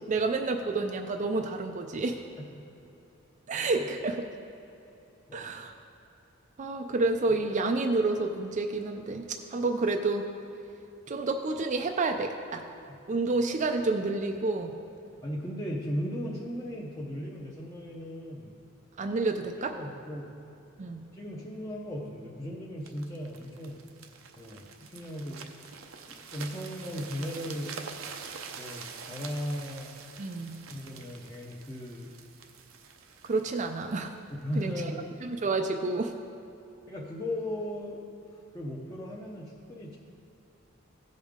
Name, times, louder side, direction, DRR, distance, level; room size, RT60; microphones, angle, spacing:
voice 1, 0.0-2.2 3.5-4.2 5.3-5.7 6.6-10.3 11.1-12.6 13.1-14.7 19.0-19.7 20.8-21.0 30.2-30.6 33.2-34.1 34.6-34.7 35.3-36.1, right 3 dB, 35° right, 4 dB, 0.4 m, -29 dB
voice 2, 3.5-3.9 5.3-5.5 12.9-13.0 15.2-18.6 19.6-20.3 21.1-23.8 24.4-25.5 26.3-27.8 28.6-29.9 30.7-32.1 34.3-35.1 36.9-40.0, equal, 15° left, -4 dB, 0.8 m, -37 dB
sound 1, 22.9-34.7 35.3-35.5, right 5 dB, 85° right, 0.7 m, -46 dB
15.5 x 5.3 x 3.6 m, 2.8 s
head